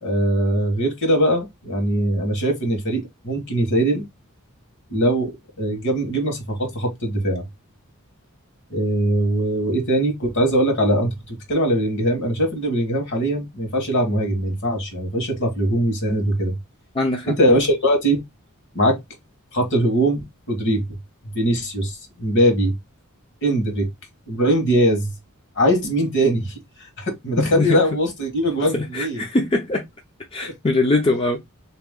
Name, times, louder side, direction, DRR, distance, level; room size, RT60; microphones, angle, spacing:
voice 1, 0.0-4.0 4.9-5.3 5.6-7.4 8.7-11.1 11.5-16.5 17.2-18.2 18.7-19.0 19.5-20.2 20.5-20.8 21.3-22.7 23.4-23.9 24.3-25.1 25.6-26.6 27.0-29.2 30.4-30.5, right 1 dB, 55° left, 1.5 m, -21 dB
voice 2, 16.9-17.3 27.4-27.8 28.7-29.8 30.3-31.4, left 2 dB, 25° left, 0.5 m, -22 dB
3.5 x 2.9 x 3.7 m
head